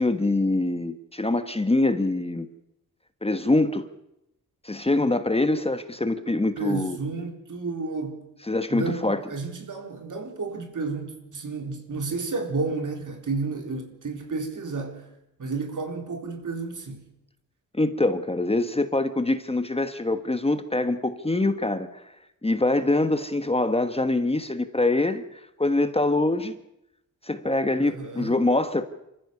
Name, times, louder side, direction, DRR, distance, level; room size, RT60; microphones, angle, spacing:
voice 1, 0.0-2.5 3.2-3.8 4.6-7.0 8.5-9.2 17.7-22.0 22.4-26.6 27.2-28.9, left 2 dB, 15° left, 1.2 m, -24 dB
voice 2, 6.6-8.3 8.7-15.1 15.4-17.1 27.8-28.3, right 4 dB, 60° right, 3.9 m, -31 dB
27.0 x 14.5 x 6.8 m
cardioid pair, 85°, 35 cm